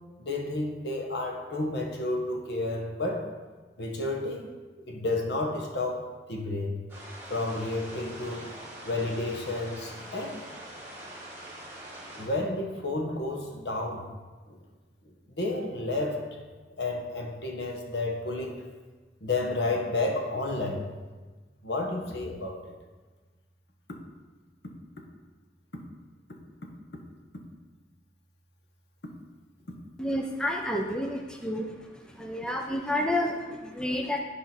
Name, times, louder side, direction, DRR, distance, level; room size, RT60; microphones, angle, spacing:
voice 1, 0.2-3.3 3.8-4.4 4.8-6.8 7.3-8.5 8.8-10.4 11.1-11.2 12.1-14.1 14.5-14.6 15.4-16.4 16.8-18.6 19.2-20.9 21.6-22.7, left 2 dB, 75° left, 2 dB, 1.2 m, -31 dB
sound 1, 6.9-12.3, right 1 dB, 10° right, 1.9 m, -44 dB
voice 2, 30.0-31.7 32.1-34.2, left 1 dB, 5° left, 2 dB, 0.5 m, -30 dB
10.0 x 5.1 x 4.4 m, 1.3 s
head